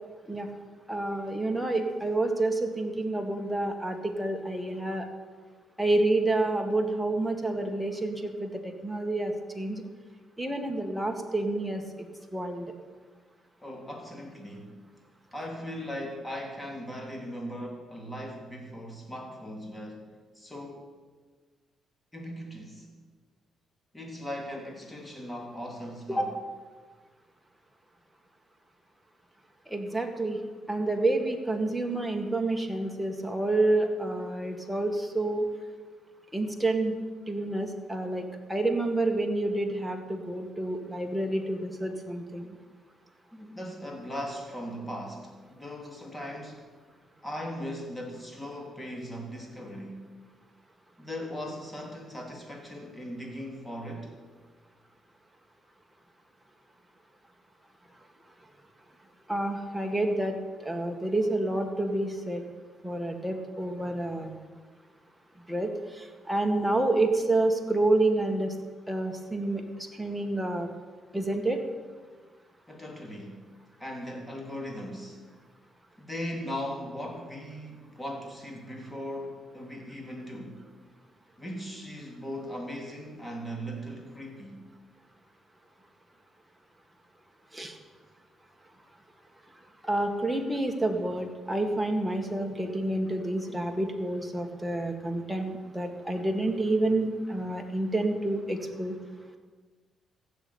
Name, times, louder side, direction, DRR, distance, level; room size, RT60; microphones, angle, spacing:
voice 1, 0.9-5.1 5.8-9.8 10.4-12.1 12.3-12.7 26.1-26.3 29.7-30.4 30.7-35.5 36.3-36.9 37.3-42.5 59.3-62.4 62.8-64.4 65.5-68.5 68.9-70.7 71.1-71.6 87.5-87.7 89.8-99.0, right 2 dB, 5° right, 3 dB, 1.9 m, -29 dB
voice 2, 13.6-14.8 15.3-20.1 20.4-20.9 22.1-22.9 23.9-26.3 43.3-46.7 47.2-50.0 51.0-54.1 72.7-73.4 73.8-75.2 76.0-80.6 81.4-84.6, equal, 15° left, 1 dB, 3.4 m, -38 dB
15.5 x 7.1 x 8.8 m, 1.4 s
cardioid pair, 90°, 0 cm